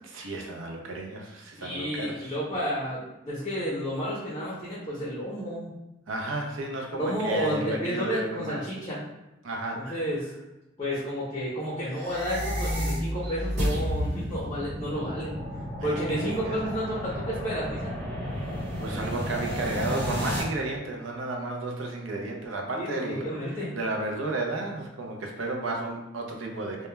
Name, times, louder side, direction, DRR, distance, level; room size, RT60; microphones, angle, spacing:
voice 1, 0.0-2.3 6.1-8.6 9.4-10.0 15.8-16.7 18.8-26.9, right 2 dB, 85° right, 2 dB, 0.5 m, -33 dB
voice 2, 1.6-5.7 7.0-9.0 9.7-10.3 10.8-15.4 15.8-17.9 22.8-23.8, equal, 25° left, -7 dB, 0.5 m, -31 dB
sound 1, 11.9-20.4, equal, 65° right, 1.1 m, -31 dB
2.2 x 2.1 x 3.0 m, 0.96 s
head